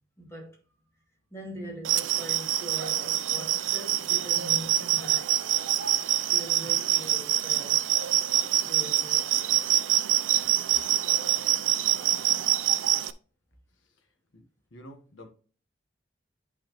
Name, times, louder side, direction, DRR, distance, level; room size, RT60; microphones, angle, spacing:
voice 1, 0.2-0.6 1.3-5.4 6.3-7.8 8.6-9.6 10.4-10.5 11.0-11.1, equal, 15° left, 2.4 m, -42 dB
sound 1, 1.8-13.1, right 13 dB, 85° right, 0.5 m, -25 dB
voice 2, 14.7-15.3, equal, 85° left, 1.3 m, -47 dB
10.5 x 4.2 x 3.0 m
head